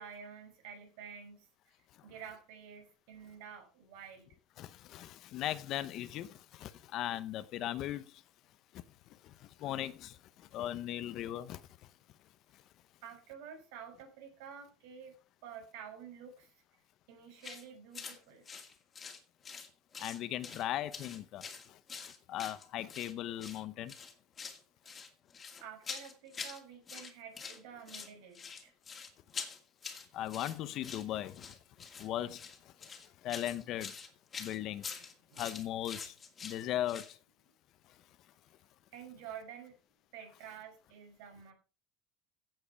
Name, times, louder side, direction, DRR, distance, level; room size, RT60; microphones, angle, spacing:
voice 1, 0.0-1.5 2.0-4.4 13.0-15.2 15.4-16.5 17.1-18.5 24.8-24.9 25.6-28.7 35.3-35.5 38.9-39.8 40.1-41.5, right 7 dB, 75° right, 6.0 m, -50 dB
voice 2, 4.6-8.1 8.7-8.8 9.2-11.6 20.0-21.8 22.0-23.9 30.1-31.6 32.0-32.9 33.2-33.9 34.4-34.9 35.4-36.1 36.4-37.2, left 12 dB, 45° left, 0.8 m, -38 dB
sound 1, 17.4-17.6 17.9-18.2 18.5-19.7 19.9-20.6 20.9-23.1 23.4-23.6 23.9-24.6 24.9-26.6 26.9-27.6 27.9-37.1, left 5 dB, 20° left, 2.3 m, -45 dB
15.5 x 7.9 x 4.7 m
cardioid pair, 155°, 0 cm